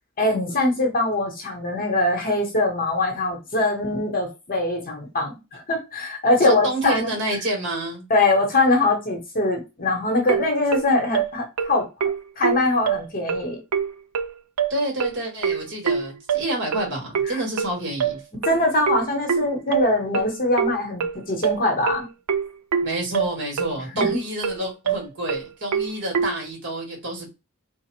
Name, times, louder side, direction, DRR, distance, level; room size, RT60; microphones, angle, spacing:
voice 1, 0.2-7.1 8.1-11.9 12.4-13.6 17.3-17.4 18.4-22.1 23.9-24.2, left 2 dB, 40° left, 1.1 m, -22 dB
voice 2, 6.4-8.0 14.7-18.2 22.8-27.3, right 1 dB, 55° right, 2.1 m, -28 dB
sound 1, 10.3-26.4, right 7 dB, 90° right, 0.5 m, -25 dB
3.2 x 2.3 x 4.3 m
head